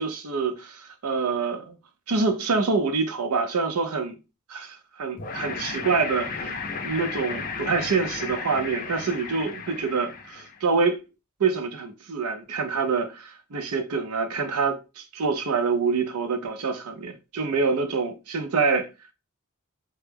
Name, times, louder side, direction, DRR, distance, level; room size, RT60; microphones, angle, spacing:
voice 1, 0.0-1.7 2.1-4.2 4.5-11.0 11.4-18.9, right 4 dB, 90° right, 0.5 m, -26 dB
sound 1, 5.2-10.6, left 5 dB, 40° left, 0.4 m, -34 dB
2.2 x 2.1 x 3.2 m
head